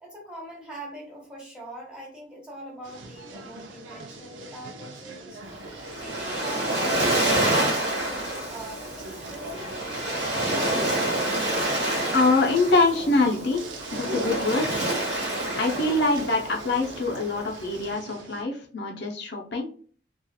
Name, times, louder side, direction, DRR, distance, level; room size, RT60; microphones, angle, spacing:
voice 1, 0.0-5.4 6.0-10.8, right 1 dB, 5° right, -4 dB, 0.9 m, -42 dB
sound 1, 2.8-18.4, right 1 dB, 80° right, 0.5 m, -42 dB
Waves surf, 5.5-17.9, right 1 dB, 65° right, 1.1 m, -28 dB
voice 2, 12.1-13.6 13.9-14.8 15.6-19.7, left 2 dB, 60° left, 1 dB, 0.6 m, -24 dB
2.8 x 2.4 x 2.3 m, 0.43 s
head